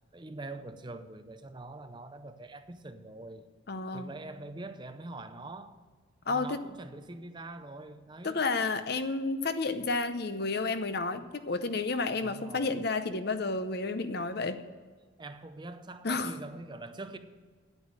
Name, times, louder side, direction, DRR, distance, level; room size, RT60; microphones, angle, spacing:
voice 1, 0.1-3.5 3.9-5.8 6.3-8.4 12.2-12.9 15.2-17.2, right 2 dB, 25° right, 0.5 m, -44 dB
voice 2, 3.7-4.1 6.3-6.6 8.2-14.6 16.0-16.3, left 3 dB, 50° left, 0.7 m, -31 dB
9.3 x 8.9 x 7.5 m
head